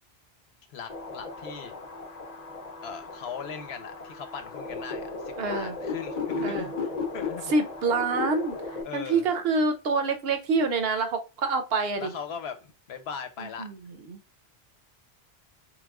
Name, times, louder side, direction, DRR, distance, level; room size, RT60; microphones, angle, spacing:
voice 1, 0.7-1.7 2.8-7.5 8.8-9.2 12.0-13.7, left 6 dB, 85° left, 7 dB, 0.9 m, -39 dB
sound 1, 0.9-8.8, left 3 dB, 45° left, 0.7 m, -35 dB
voice 2, 5.4-5.7 6.4-6.7 7.5-12.1 13.4-14.2, right 3 dB, 75° right, 7 dB, 0.9 m, -27 dB
4.0 x 3.1 x 2.3 m, 0.29 s
omnidirectional pair, 1.0 m